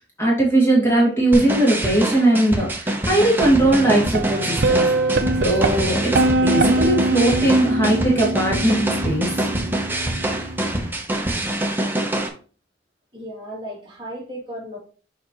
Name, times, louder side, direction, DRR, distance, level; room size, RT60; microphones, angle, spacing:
voice 1, 0.2-4.9 5.4-6.1 6.4-9.5, right 1 dB, 15° left, -4 dB, 2.4 m, -19 dB
sound 1, 1.3-12.3, right 1 dB, 10° right, 0.9 m, -25 dB
sound 2, 3.4-10.9, right 2 dB, 65° right, 0.6 m, -23 dB
voice 2, 13.1-14.8, equal, 25° right, -4 dB, 2.6 m, -35 dB
7.1 x 5.2 x 3.1 m, 0.38 s
head